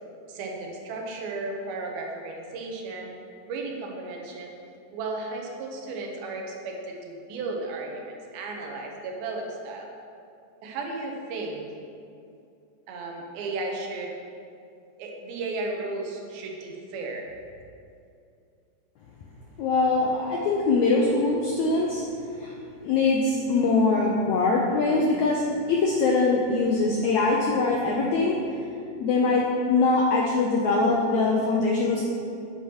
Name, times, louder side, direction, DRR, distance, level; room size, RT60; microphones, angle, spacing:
voice 1, 0.3-3.1 3.4-4.5 4.9-9.9 10.6-11.6 12.9-14.1 15.0-17.3, right 3 dB, 85° right, 0 dB, 2.9 m, -34 dB
voice 2, 19.6-22.0 22.4-22.5 22.8-28.4 29.0-32.0, left 3 dB, 85° left, -1 dB, 1.6 m, -23 dB
9.3 x 8.9 x 3.0 m, 2.5 s
omnidirectional pair, 4.2 m